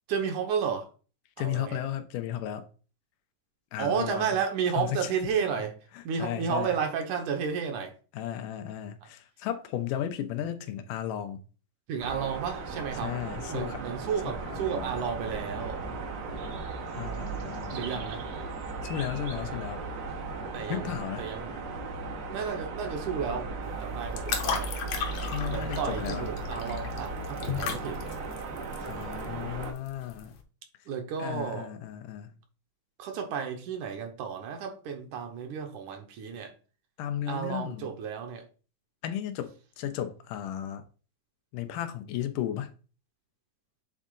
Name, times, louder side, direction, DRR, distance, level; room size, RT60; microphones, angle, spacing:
voice 1, 0.1-0.9 1.4-1.8 3.8-5.7 6.0-7.9 11.9-13.1 13.5-15.8 17.7-18.2 20.5-20.9 21.2-21.5 22.3-24.7 25.5-28.0 30.9-31.7 33.0-36.5 37.3-38.4, right 7 dB, 75° right, 2.4 m, -32 dB
voice 2, 1.4-2.7 3.7-4.4 4.7-5.1 5.9-6.8 8.1-11.4 13.0-13.8 14.2-15.0 16.9-18.0 18.8-19.8 20.7-21.3 25.3-26.3 28.8-30.3 31.2-32.4 37.0-37.9 39.0-40.9 41.5-42.7, left 10 dB, 85° left, 2.4 m, -34 dB
sound 1, 12.0-29.7, right 3 dB, 90° right, 3.1 m, -36 dB
sound 2, 23.6-30.4, left 7 dB, 70° left, 2.2 m, -36 dB
8.4 x 3.7 x 3.8 m
omnidirectional pair, 3.7 m